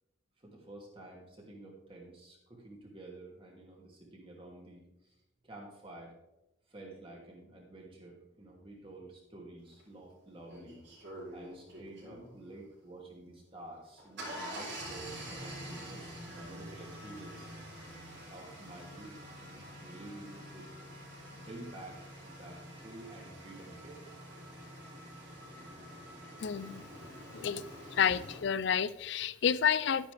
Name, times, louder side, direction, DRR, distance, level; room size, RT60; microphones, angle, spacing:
voice 1, 0.4-5.2 5.4-6.1 6.7-10.8 11.3-17.6 17.9-20.8 21.3-24.0, right 2 dB, 25° right, -1 dB, 2.6 m, -50 dB
sound 1, 9.8-9.9 10.5-12.3 13.7-28.4, equal, 55° right, 4.1 m, -47 dB
voice 2, 26.4-26.8 27.3-27.6 27.9-30.1, left 7 dB, 55° left, 18 dB, 0.4 m, -30 dB
11.5 x 9.9 x 3.4 m, 0.94 s
head